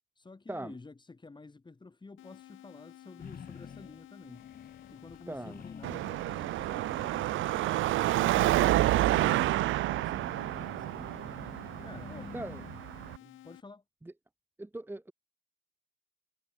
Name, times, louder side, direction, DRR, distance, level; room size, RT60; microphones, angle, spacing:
voice 1, 0.2-4.5 4.9-7.6 8.0-11.2 11.8-12.5 13.2-13.8, left 3 dB, 25° left, 4.0 m, -51 dB
sound 1, 2.2-13.6, left 13 dB, 80° left, 4.0 m, -53 dB
sound 2, 3.2-6.2 6.4-13.0, left 7 dB, 50° left, 7.1 m, -50 dB
voice 2, 5.3-5.6 12.3-12.6 14.6-15.1, right 1 dB, 10° right, 0.9 m, -39 dB
Car passing by / Traffic noise roadway noise / Engine, 5.8-13.2, right 16 dB, 80° right, 0.6 m, -29 dB
cardioid pair, 90°, 20 cm